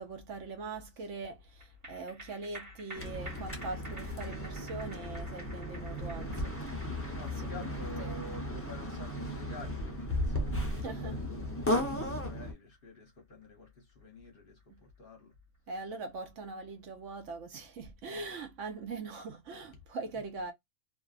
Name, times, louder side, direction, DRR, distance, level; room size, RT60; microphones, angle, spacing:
voice 1, 0.0-6.9 7.2-7.5 8.0-8.3 10.7-11.2 15.7-20.5, right 3 dB, 65° right, 1.0 m, -42 dB
sound 1, 1.6-14.3 14.6-14.7, right 1 dB, 15° right, 1.2 m, -52 dB
sound 2, 2.9-12.5, left 1 dB, 20° left, 0.4 m, -35 dB
voice 2, 7.1-11.7 11.9-15.3 18.1-18.2, left 2 dB, 45° left, 0.9 m, -49 dB
2.6 x 2.5 x 2.4 m
omnidirectional pair, 1.5 m